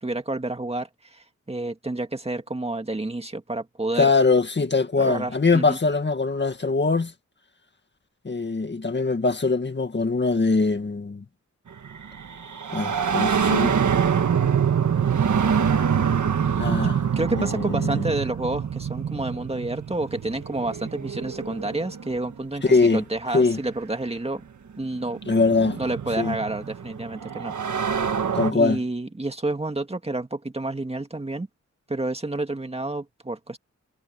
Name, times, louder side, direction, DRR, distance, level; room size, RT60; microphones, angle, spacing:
voice 1, 0.0-4.1 5.0-5.8 17.2-24.4 24.8-25.2 25.5-27.8 28.5-31.5 31.9-33.6, right 2 dB, 20° right, 1.9 m, -29 dB
voice 2, 4.0-7.1 8.2-11.2 12.7-13.8 16.6-17.0 17.3-18.1 22.6-23.0 23.3-23.6 25.3-25.8 26.2-26.4 28.3-28.8, left 3 dB, 35° left, 2.0 m, -22 dB
sound 1, 11.8-22.4 23.6-23.7 24.8-28.5, right 7 dB, 75° right, 1.6 m, -25 dB
wide cardioid pair, 120°, 30 cm